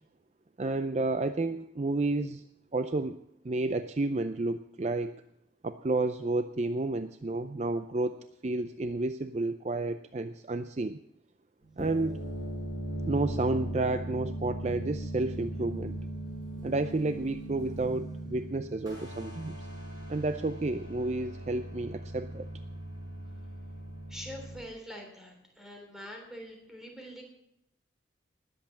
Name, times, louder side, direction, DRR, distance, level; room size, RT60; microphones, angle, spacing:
voice 1, 0.6-2.4 2.7-3.2 3.4-5.1 5.6-8.2 8.4-11.0 11.8-12.2 13.1-16.0 16.6-19.6 20.1-22.5, right 2 dB, 35° right, 10 dB, 0.5 m, -31 dB
sound 1, 11.6-24.6, right 1 dB, 20° right, 5.9 m, -39 dB
voice 2, 24.1-27.2, equal, ahead, 1 dB, 3.4 m, -44 dB
19.5 x 7.9 x 7.2 m, 0.78 s
head